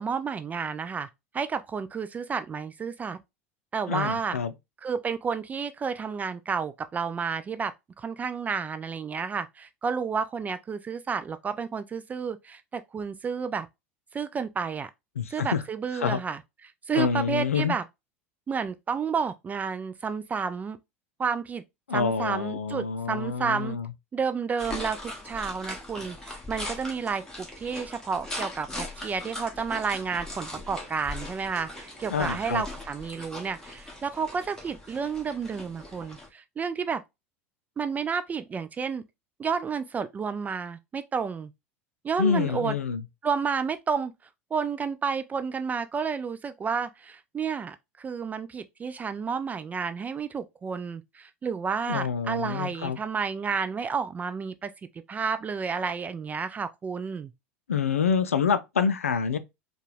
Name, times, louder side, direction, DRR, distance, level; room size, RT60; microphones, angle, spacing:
voice 1, 0.0-3.2 3.7-4.4 4.8-13.7 14.1-14.9 15.3-16.4 16.9-17.8 18.5-20.8 21.2-21.6 21.9-23.8 24.1-37.0 37.8-39.0 39.4-41.5 42.0-42.8 43.2-44.1 44.5-54.7 55.1-57.3, right 5 dB, 20° right, 0.3 m, -31 dB
voice 2, 3.9-4.5 15.2-15.6 16.0-16.2 16.9-17.8 21.9-23.9 32.1-32.6 42.2-43.0 51.9-53.0 57.7-59.4, left 6 dB, 80° left, 0.4 m, -27 dB
sound 1, 24.6-36.3, left 1 dB, 10° left, 1.6 m, -40 dB
4.6 x 2.3 x 3.1 m
figure-of-eight pair, 75°, 7 cm